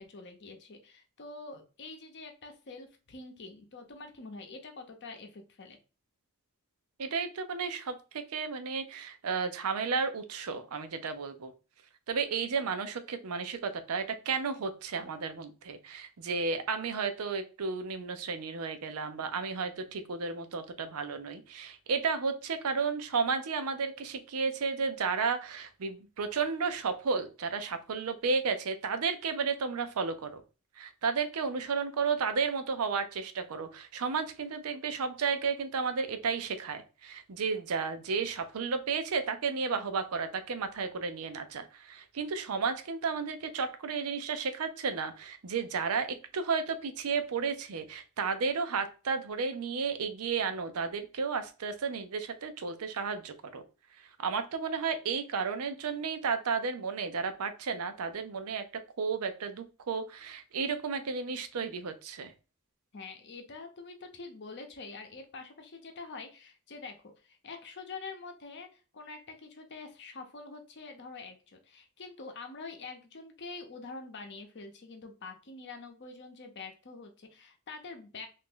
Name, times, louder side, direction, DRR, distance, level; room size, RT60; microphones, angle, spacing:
voice 1, 0.0-5.8 62.9-78.3, left 3 dB, 50° left, 5 dB, 0.7 m, -46 dB
voice 2, 7.0-11.5 12.1-30.4 30.8-53.6 54.2-58.6 59.0-62.3, right 5 dB, 80° right, 9 dB, 0.5 m, -33 dB
2.9 x 2.6 x 3.7 m, 0.33 s
head